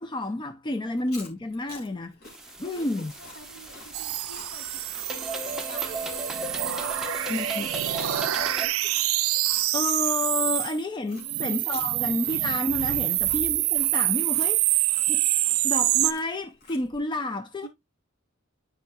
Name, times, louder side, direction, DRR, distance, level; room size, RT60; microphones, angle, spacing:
voice 1, 0.0-2.1 2.6-3.1 7.3-7.7 9.7-15.2 15.6-17.7, left 2 dB, 20° left, 0.4 m, -30 dB
Chewing mastication, 0.9-10.7 11.1-17.0, left 3 dB, 50° left, 2.6 m, -49 dB
sound 1, 2.2-8.7, right 1 dB, 5° right, 1.0 m, -36 dB
voice 2, 2.4-6.3 6.5-9.0 11.0-11.9 12.9-13.2 17.6-17.7, right 1 dB, 65° left, 2.8 m, -49 dB
sound 2, 3.9-10.8 11.2-16.1, right 16 dB, 80° right, 0.4 m, -26 dB
10.5 x 4.8 x 2.3 m
head